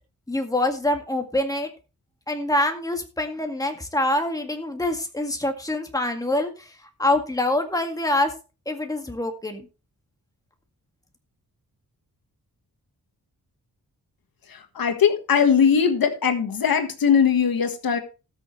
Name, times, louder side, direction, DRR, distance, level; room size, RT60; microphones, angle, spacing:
voice 1, 0.3-1.7 2.3-6.7 7.0-8.3 8.7-9.6, left 1 dB, 10° left, 1.9 m, -25 dB
voice 2, 14.5-18.0, left 7 dB, 75° left, 1.6 m, -20 dB
19.0 x 6.4 x 3.2 m
wide cardioid pair, 135°, 36 cm